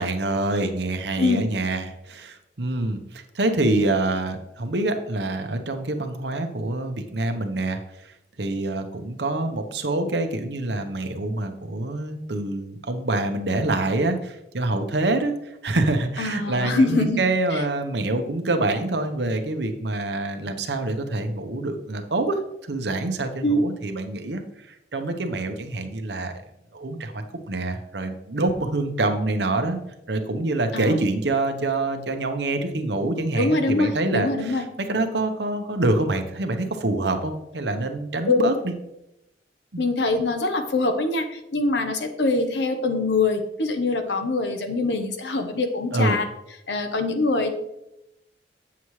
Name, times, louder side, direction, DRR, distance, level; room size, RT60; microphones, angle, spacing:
voice 1, 0.0-15.3 15.6-24.4 24.7-26.3 26.7-29.8 30.1-34.6 34.9-38.7 39.7-39.8 45.9-46.2, right 2 dB, 75° right, 6 dB, 0.9 m, -26 dB
voice 2, 1.2-1.5 16.2-17.2 17.5-17.6 23.4-23.6 30.7-31.0 33.4-34.6 38.3-38.4 39.8-46.3 46.7-47.5, left 2 dB, 75° left, 6 dB, 1.0 m, -23 dB
8.3 x 7.2 x 3.2 m, 0.86 s
head